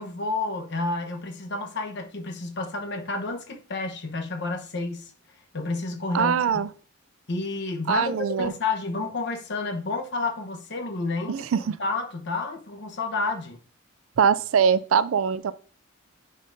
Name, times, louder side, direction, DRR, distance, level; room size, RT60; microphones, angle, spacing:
voice 1, 0.0-5.1 5.5-6.3 7.3-11.3 11.8-13.6, left 3 dB, 60° left, 1.0 m, -30 dB
voice 2, 6.1-6.7 7.9-8.5 11.3-11.8 14.2-15.5, right 7 dB, 75° right, 0.4 m, -22 dB
9.8 x 5.3 x 2.7 m
head